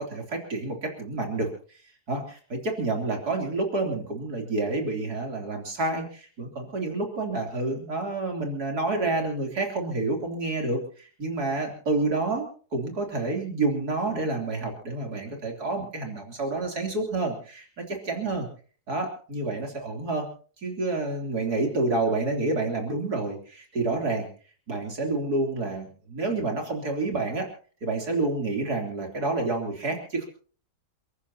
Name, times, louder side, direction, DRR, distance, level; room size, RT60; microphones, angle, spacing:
voice 1, 0.0-1.5 2.1-18.5 18.9-20.3 20.6-24.3 24.7-27.5 27.8-30.2, right 2 dB, 70° right, 1 dB, 3.9 m, -29 dB
29.5 x 14.5 x 2.9 m, 0.41 s
omnidirectional pair, 1.7 m